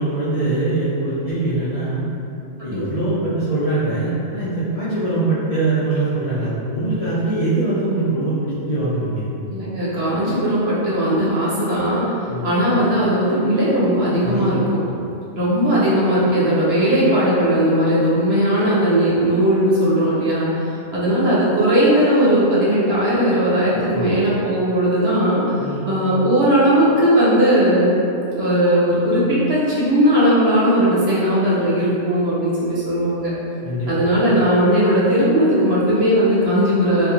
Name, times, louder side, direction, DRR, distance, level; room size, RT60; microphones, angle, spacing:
voice 1, 0.0-2.0 2.6-9.3 12.3-12.5 14.2-14.5 23.9-24.1 25.6-25.9 33.6-33.9, right 2 dB, 60° left, -11 dB, 0.4 m, -22 dB
voice 2, 9.5-12.0 12.4-14.6 15.3-25.4 25.8-27.9 28.3-33.3 33.9-37.1, equal, 60° right, -8 dB, 0.9 m, -18 dB
2.8 x 2.3 x 2.4 m, 2.6 s
omnidirectional pair, 1.3 m